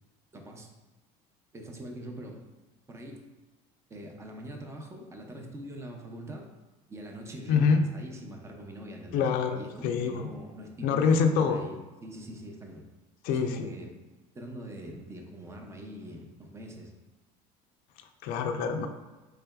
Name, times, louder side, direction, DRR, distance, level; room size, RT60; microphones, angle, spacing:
voice 1, 0.3-0.7 1.5-2.4 2.9-3.2 3.9-6.5 6.9-9.3 9.5-12.8 13.3-13.9 14.3-16.9, right 1 dB, 15° right, 2 dB, 0.6 m, -43 dB
voice 2, 7.5-7.9 9.1-10.3 10.8-11.6 13.2-13.7 18.2-18.9, left 5 dB, 65° left, 6 dB, 0.4 m, -25 dB
4.6 x 3.3 x 2.2 m, 1.2 s
supercardioid pair, 120°, 17 cm